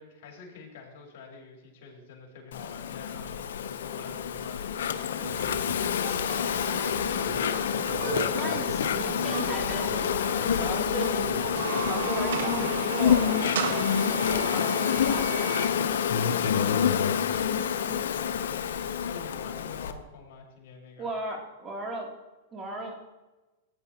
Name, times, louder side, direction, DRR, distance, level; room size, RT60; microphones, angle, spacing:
voice 1, 0.0-6.9 18.0-18.7 19.0-21.1, left 4 dB, 60° left, 0 dB, 3.7 m, -47 dB
Insect, 2.5-19.9, left 8 dB, 80° left, 0.7 m, -28 dB
sound 1, 5.1-12.9, right 10 dB, 65° right, 0.6 m, -40 dB
voice 2, 7.9-11.6 11.8-15.5 17.8-18.2 21.0-22.1 22.5-23.0, right 2 dB, 20° right, 0 dB, 2.6 m, -36 dB
sound 2, 11.4-15.7, right 7 dB, 80° right, 1.2 m, -34 dB
15.0 x 9.7 x 2.8 m, 1.1 s
hypercardioid pair, 130°, 0 cm